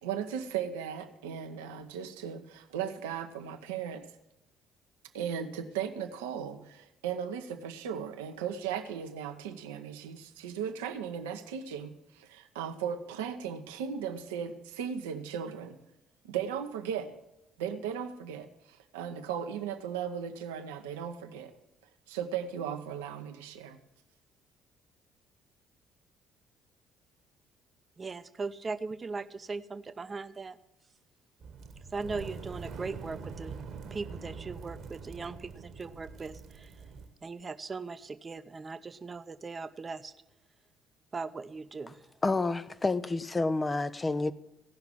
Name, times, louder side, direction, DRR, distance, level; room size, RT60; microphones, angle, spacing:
voice 1, 0.0-4.1 5.1-15.8 16.2-17.1 17.6-21.5 22.1-23.8, right 8 dB, 75° right, 0.8 m, -37 dB
voice 2, 28.0-30.6 31.9-33.5 33.9-36.7 37.2-40.1 41.1-42.0, right 4 dB, 30° right, 0.7 m, -39 dB
sound 1, 31.4-37.1, right 5 dB, 55° right, 1.3 m, -44 dB
voice 3, 42.2-44.3, left 3 dB, 25° left, 0.6 m, -29 dB
16.5 x 5.8 x 7.4 m
figure-of-eight pair, 50°, 0 cm